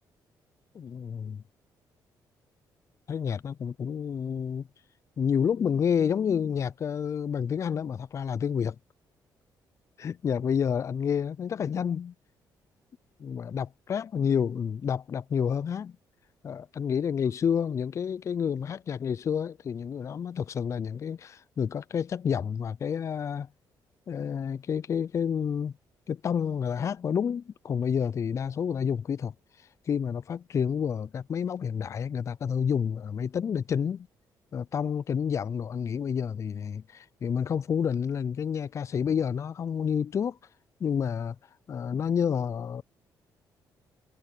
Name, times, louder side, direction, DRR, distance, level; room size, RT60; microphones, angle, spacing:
voice 1, 0.7-1.4 3.1-4.7 5.2-8.8 10.0-12.1 13.2-16.0 16.4-23.5 24.1-25.7 26.1-29.3 29.9-34.1 34.5-40.4 40.8-41.4 41.7-42.8, left 7 dB, 40° left, 0.3 m, -29 dB
cardioid pair, 95°, 8 cm